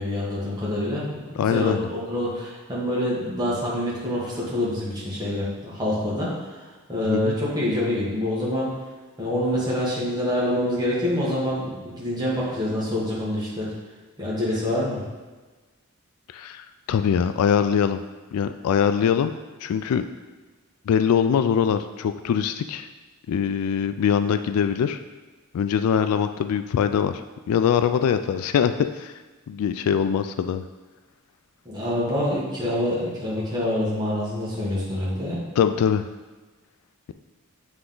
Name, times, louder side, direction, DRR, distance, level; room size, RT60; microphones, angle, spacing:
voice 1, 0.0-6.6 6.9-8.7 9.2-13.7 14.2-15.0 31.6-35.4, left 1 dB, 20° right, -7 dB, 1.5 m, -26 dB
voice 2, 1.4-1.9 7.0-7.3 16.3-18.0 18.3-20.1 20.9-22.9 23.3-25.0 25.5-27.2 27.5-29.1 29.5-30.6 35.6-36.1, left 7 dB, 90° left, 10 dB, 0.3 m, -23 dB
7.9 x 3.5 x 3.8 m, 1.2 s
head